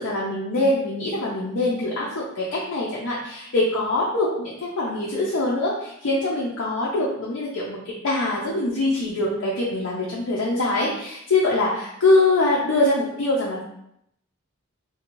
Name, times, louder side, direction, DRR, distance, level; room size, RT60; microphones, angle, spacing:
voice 1, 0.0-7.8 8.0-13.6, left 2 dB, 75° left, -6 dB, 0.5 m, -23 dB
2.5 x 2.2 x 2.9 m, 0.77 s
head